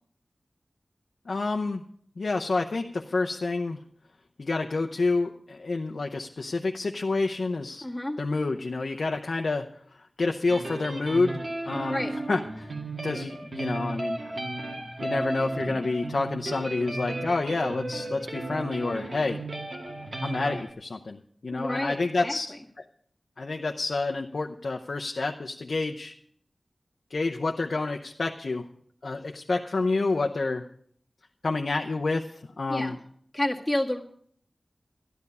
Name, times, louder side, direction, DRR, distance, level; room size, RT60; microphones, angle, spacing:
voice 1, 1.3-1.8 2.2-3.8 4.4-7.9 8.2-9.7 9.9-12.0 12.3-12.7 13.0-14.3 15.0-19.4 20.2-22.8 23.4-26.1 27.1-28.7 29.0-30.6 31.4-33.0, left 3 dB, 75° left, 3 dB, 0.7 m, -28 dB
voice 2, 7.8-8.2 11.9-12.1 21.5-22.4 32.7-33.0 33.3-34.0, left 1 dB, 15° left, 0 dB, 1.8 m, -29 dB
sound 1, 10.5-20.7, right 2 dB, 70° right, 2.1 m, -34 dB
13.0 x 11.0 x 5.5 m, 0.62 s
wide cardioid pair, 60°, 0 cm